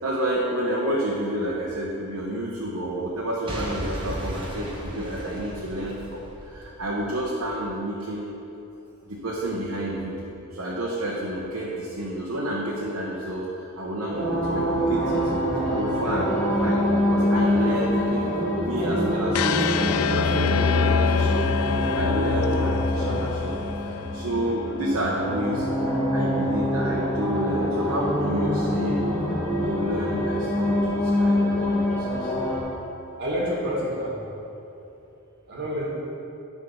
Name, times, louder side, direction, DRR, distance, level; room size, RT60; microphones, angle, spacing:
voice 1, 0.0-8.3 9.0-15.3 15.7-18.2 18.6-21.4 21.9-29.0 29.6-32.3, right 1 dB, 90° right, -4 dB, 0.9 m, -30 dB
Boom / Shatter / Crushing, 3.5-7.5 8.0-8.1, equal, 25° right, 1.1 m, -35 dB
sound 1, 14.1-32.6, left 1 dB, 5° left, 1.6 m, -25 dB
sound 2, 19.3-25.4, left 5 dB, 80° left, 0.3 m, -26 dB
voice 2, 33.2-34.2 35.5-35.9, equal, 55° right, -5 dB, 1.5 m, -28 dB
9.8 x 3.7 x 5.4 m, 2.9 s
head